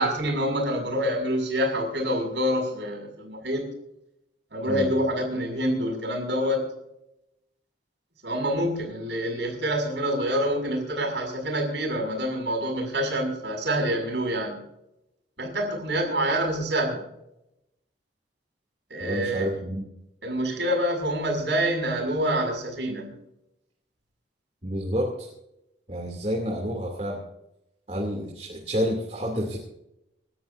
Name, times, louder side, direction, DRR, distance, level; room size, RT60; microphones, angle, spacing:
voice 1, 0.0-3.7 4.5-6.7 8.2-14.6 15.4-17.0 18.9-19.5 20.2-23.1, equal, 70° right, 1 dB, 6.3 m, -26 dB
voice 2, 19.0-19.9 24.6-25.3 25.9-27.2 27.9-29.6, equal, 35° right, -2 dB, 2.8 m, -29 dB
27.5 x 13.0 x 2.7 m, 0.83 s
head